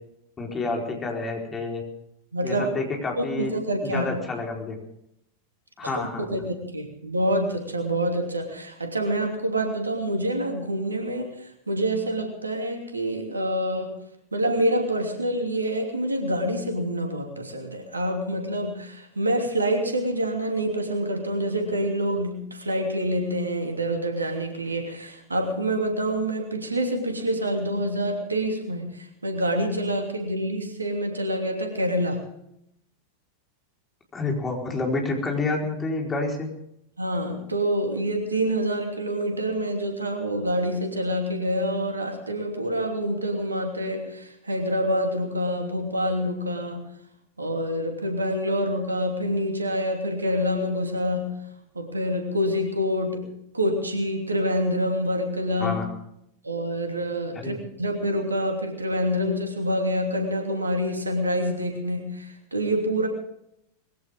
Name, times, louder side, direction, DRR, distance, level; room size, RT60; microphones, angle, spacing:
voice 1, 0.4-1.8 2.4-3.5 3.8-4.8 5.8-6.3 34.1-36.5 55.6-55.8 57.3-57.6, left 3 dB, 20° left, 0 dB, 4.5 m, -28 dB
voice 2, 2.3-2.7 3.2-4.1 5.9-13.9 14.3-32.2 37.0-46.9 47.4-51.4 51.7-53.3 53.5-55.8 56.4-63.1, equal, 80° right, 3 dB, 2.9 m, -27 dB
21.5 x 16.0 x 3.7 m, 0.76 s
figure-of-eight pair, 90°, 0 cm